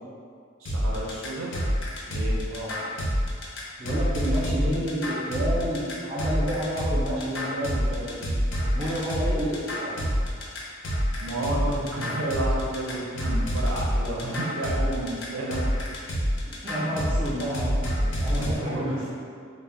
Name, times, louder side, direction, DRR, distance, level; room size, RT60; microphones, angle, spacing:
voice 1, 0.6-1.6 2.1-2.4 11.2-15.8 18.3-19.1, right 1 dB, 80° right, -4 dB, 0.5 m, -31 dB
sound 1, 0.7-18.5, equal, 65° left, 0.5 m, -27 dB
voice 2, 3.8-8.2 8.7-10.0 16.6-19.1, equal, 30° right, -6 dB, 0.4 m, -30 dB
2.1 x 2.0 x 3.5 m, 2.2 s
head